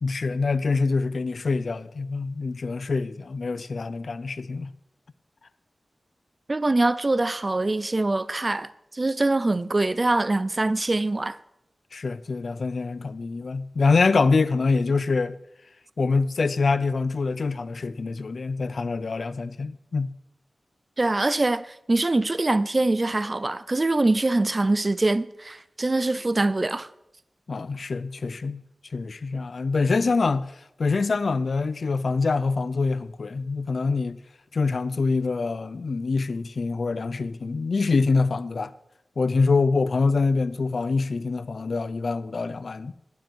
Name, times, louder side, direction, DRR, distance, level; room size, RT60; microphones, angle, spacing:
voice 1, 0.0-4.7 11.9-15.4 16.0-20.1 27.5-34.2 34.5-38.7 39.2-42.9, left 4 dB, 60° left, 0.5 m, -25 dB
voice 2, 6.5-11.4 21.0-26.9, right 2 dB, 30° right, 0.5 m, -24 dB
15.5 x 9.3 x 4.6 m
wide cardioid pair, 120°, 0 cm